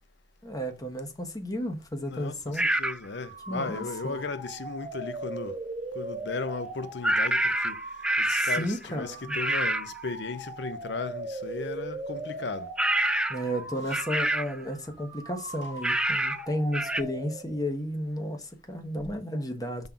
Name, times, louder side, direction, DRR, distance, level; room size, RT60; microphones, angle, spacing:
voice 1, 0.4-2.6 3.5-4.2 8.3-9.4 13.3-19.9, equal, 20° left, 1.2 m, -33 dB
voice 2, 2.1-5.6 5.9-7.8 8.2-12.7 13.9-14.0, left 4 dB, 70° left, 0.7 m, -36 dB
sound 1, 2.6-3.0 7.0-8.8 9.3-9.9 12.8-13.5 13.9-14.6 15.8-16.4 16.7-17.0, right 1 dB, 5° right, 0.3 m, -26 dB
sound 2, 3.0-17.7, right 2 dB, 30° right, 1.2 m, -40 dB
5.5 x 3.8 x 5.8 m
head